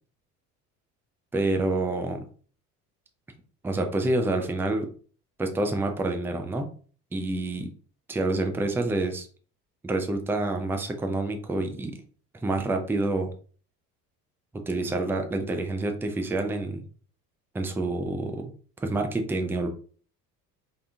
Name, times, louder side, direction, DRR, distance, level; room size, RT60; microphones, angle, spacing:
voice 1, 1.3-2.2 3.6-4.9 5.4-6.7 7.1-7.7 8.1-9.3 9.8-11.9 12.4-13.3 14.7-16.8 17.5-18.5 18.8-19.7, right 2 dB, 5° right, 5 dB, 0.4 m, -27 dB
3.3 x 2.7 x 2.4 m, 0.42 s
figure-of-eight pair, 60°, 44 cm